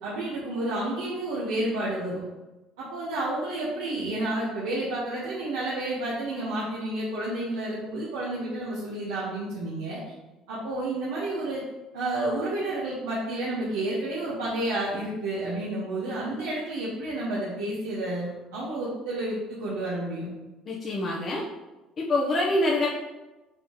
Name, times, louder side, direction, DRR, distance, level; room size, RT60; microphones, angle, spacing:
voice 1, 0.0-2.2 2.8-10.0 10.5-11.6 11.9-20.3, right 1 dB, 90° right, -7 dB, 1.3 m, -30 dB
voice 2, 20.7-21.4 22.0-22.9, left 1 dB, 45° left, -4 dB, 1.0 m, -25 dB
6.2 x 4.9 x 3.1 m, 1.1 s
supercardioid pair, 80°, 0 cm